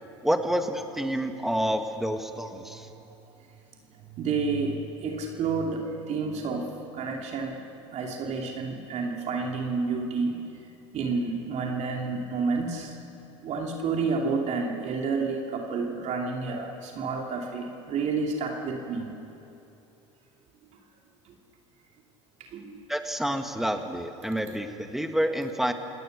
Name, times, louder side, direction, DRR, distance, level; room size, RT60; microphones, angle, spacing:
voice 1, 0.2-2.9 22.9-25.7, equal, ahead, 6 dB, 1.9 m, -28 dB
voice 2, 4.1-7.7 7.9-10.4 10.9-13.0 13.4-19.1 21.2-21.3 22.4-22.8, right 4 dB, 50° right, 1 dB, 2.8 m, -30 dB
29.5 x 18.5 x 6.7 m, 2.8 s
hypercardioid pair, 75°, 15 cm